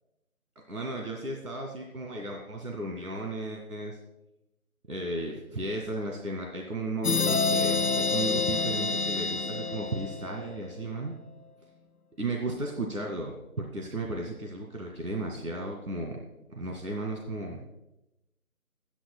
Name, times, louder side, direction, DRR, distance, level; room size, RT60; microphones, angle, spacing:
voice 1, 0.7-4.0 4.9-11.1 12.2-16.2 16.5-17.6, right 2 dB, 85° right, 0 dB, 2.3 m, -34 dB
sound 1, 7.0-10.6, left 4 dB, 90° left, 0.8 m, -28 dB
22.0 x 10.0 x 2.3 m, 0.91 s
figure-of-eight pair, 180°, 44 cm